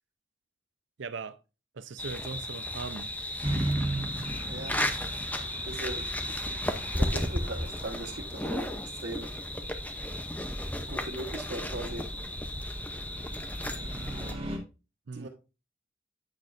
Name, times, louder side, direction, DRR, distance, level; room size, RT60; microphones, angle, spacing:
voice 1, 1.0-1.4 1.7-3.1 15.1-15.3, right 4 dB, 80° right, 0.6 m, -39 dB
sound 1, 2.0-14.3, left 1 dB, 10° left, 0.6 m, -34 dB
sound 2, 3.4-14.6, right 1 dB, 30° right, 1.7 m, -38 dB
voice 2, 4.4-5.0 5.7-6.7 6.9-9.3 10.9-12.1 15.1-15.3, right 1 dB, 60° right, 1.3 m, -39 dB
9.0 x 6.5 x 2.5 m
head